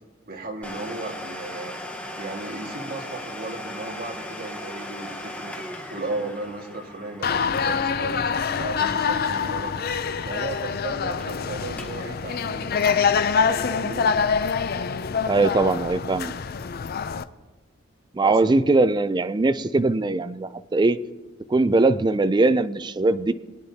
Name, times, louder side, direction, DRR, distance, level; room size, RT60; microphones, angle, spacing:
voice 1, 0.3-1.8 2.2-5.6 5.9-9.7 10.2-12.9 13.7-14.1 18.2-18.4, right 2 dB, 50° right, 1 dB, 1.8 m, -35 dB
Domestic sounds home sounds, 0.6-10.1 10.3-10.4 11.0-11.4 11.7-12.0 12.4-14.4 14.9-15.0 15.7-15.8, left 1 dB, 5° left, 1.1 m, -39 dB
sound 1, 7.2-17.2, left 6 dB, 50° left, 0.5 m, -25 dB
voice 2, 15.3-16.3 18.1-21.0 21.5-23.3, right 3 dB, 20° right, 12 dB, 0.4 m, -21 dB
22.0 x 9.5 x 2.8 m, 1.2 s
head